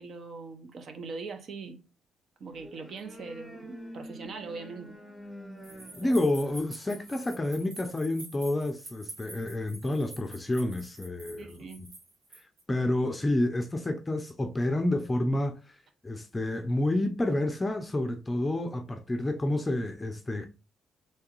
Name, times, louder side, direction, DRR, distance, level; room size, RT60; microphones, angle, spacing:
voice 1, 0.0-1.8 2.4-5.0 6.0-6.2 11.4-11.8, right 4 dB, 60° right, 0.8 m, -41 dB
sound 1, 2.5-7.7, equal, 5° right, 1.0 m, -47 dB
sound 2, 5.6-12.6, right 2 dB, 80° right, 1.5 m, -47 dB
voice 2, 6.0-11.9 12.3-15.6 16.0-20.5, left 1 dB, 20° left, 0.5 m, -29 dB
3.5 x 3.2 x 3.0 m
cardioid pair, 80°, 0 cm